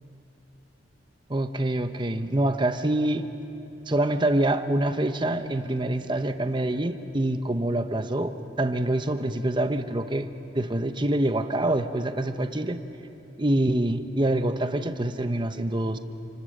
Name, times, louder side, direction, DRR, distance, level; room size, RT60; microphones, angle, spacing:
voice 1, 1.3-3.3 3.9-8.3 8.6-10.3 10.5-12.8 13.4-16.0, right 1 dB, 25° right, 8 dB, 1.0 m, -25 dB
28.5 x 25.5 x 6.7 m, 2.8 s
head